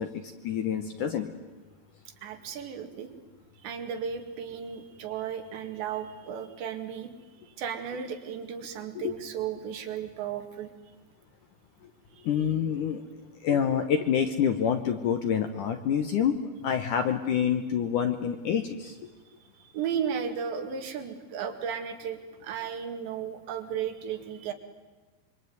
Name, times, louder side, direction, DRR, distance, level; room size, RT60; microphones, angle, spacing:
voice 1, 0.0-1.3 9.0-9.1 12.2-13.0 13.4-16.4 16.6-19.0, left 8 dB, 70° left, 8 dB, 2.0 m, -27 dB
voice 2, 2.2-3.1 3.6-7.1 7.5-10.7 12.1-12.3 19.3-24.5, right 7 dB, 80° right, 6 dB, 4.5 m, -35 dB
26.5 x 24.0 x 9.4 m, 1.3 s
omnidirectional pair, 5.0 m